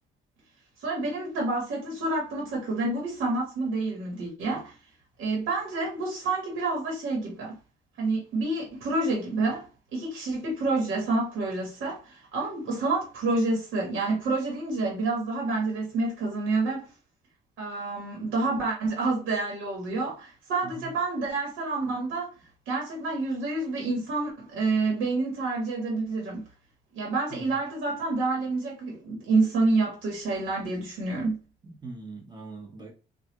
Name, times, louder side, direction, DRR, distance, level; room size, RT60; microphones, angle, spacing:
voice 1, 0.8-4.7 5.2-7.6 8.0-9.7 9.9-16.9 17.6-22.3 22.7-26.4 26.9-31.3, right 3 dB, 90° right, 1.3 m, -28 dB
voice 2, 31.6-32.9, right 3 dB, 20° right, 1.4 m, -41 dB
3.2 x 2.5 x 2.9 m
cardioid pair, 90°, 20 cm